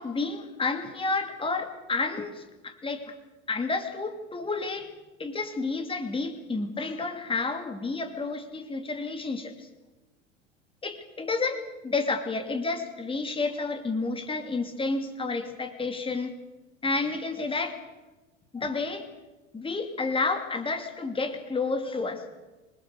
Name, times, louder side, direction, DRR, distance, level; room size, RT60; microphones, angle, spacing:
voice 1, 0.0-3.1 3.5-4.9 5.2-9.7 10.8-16.4 16.8-17.8 18.5-19.1 19.5-22.2, left 3 dB, 15° left, 6 dB, 2.7 m, -30 dB
26.5 x 21.5 x 6.7 m, 1.1 s
figure-of-eight pair, 80°, 38 cm